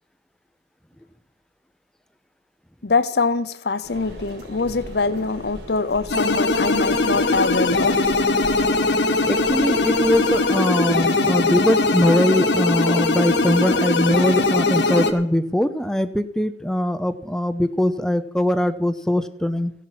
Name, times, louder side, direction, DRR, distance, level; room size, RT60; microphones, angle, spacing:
voice 1, 2.8-8.0, left 4 dB, 65° left, 0.8 m, -23 dB
sound 1, 3.8-10.4, equal, 75° right, 4.6 m, -40 dB
sound 2, 6.1-15.1, left 2 dB, 85° left, 1.4 m, -20 dB
voice 2, 9.3-19.7, left 1 dB, 5° left, 0.7 m, -21 dB
15.0 x 11.0 x 5.9 m
head